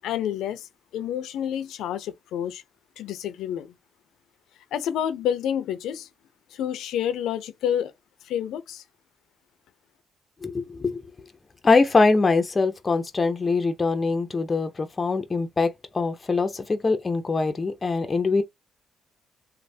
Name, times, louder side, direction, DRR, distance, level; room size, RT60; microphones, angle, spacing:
voice 1, 0.0-0.7 0.9-2.6 3.0-3.7 4.7-6.1 6.5-7.9 8.2-8.8, left 10 dB, 80° left, 0.5 m, -28 dB
voice 2, 10.4-11.0 11.6-18.4, left 3 dB, 30° left, 0.5 m, -23 dB
3.2 x 2.0 x 2.6 m
cardioid pair, 90°, 0 cm